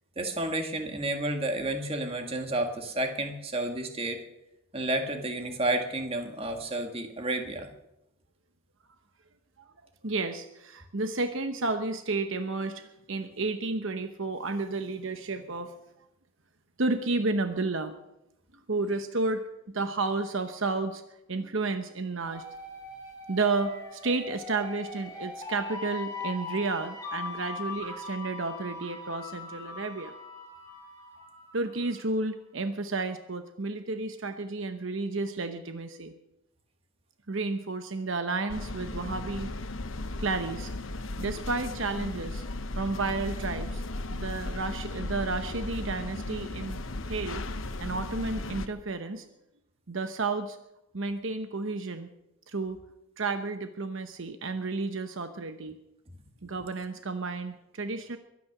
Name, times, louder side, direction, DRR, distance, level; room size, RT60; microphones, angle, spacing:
voice 1, 0.2-4.2 4.7-7.7, right 2 dB, 25° right, 5 dB, 1.8 m, -31 dB
voice 2, 10.0-15.7 16.8-17.9 18.7-21.0 21.3-22.4 23.3-30.1 31.5-36.1 37.3-39.5 40.2-40.7 41.2-42.4 42.7-43.8 44.1-46.8 47.1-47.4 47.8-49.3 49.9-50.6 50.9-52.1 52.5-52.8 53.2-55.8 56.4-58.2, right 3 dB, 65° right, 8 dB, 1.0 m, -31 dB
sound 1, 22.3-31.9, left 4 dB, 15° left, 5.1 m, -41 dB
sound 2, 38.5-48.7, left 2 dB, 65° left, 1.0 m, -36 dB
23.0 x 9.6 x 6.0 m, 0.87 s
head